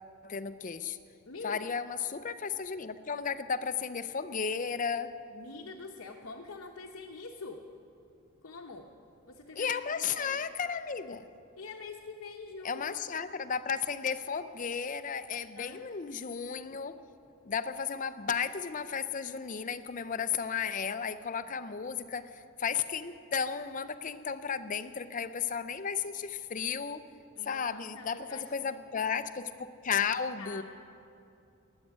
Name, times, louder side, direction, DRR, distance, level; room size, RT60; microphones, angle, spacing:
voice 1, 0.2-1.0 1.4-5.1 9.6-11.3 12.6-17.0 17.5-27.0 27.4-30.6, left 6 dB, 35° left, 12 dB, 0.5 m, -34 dB
voice 2, 1.3-1.6 5.3-7.6 8.4-8.9 9.3-10.4 11.6-13.0 15.4-15.8 27.3-28.9 30.4-30.6, left 3 dB, 65° left, 0 dB, 0.9 m, -45 dB
14.5 x 8.9 x 9.9 m, 2.7 s
head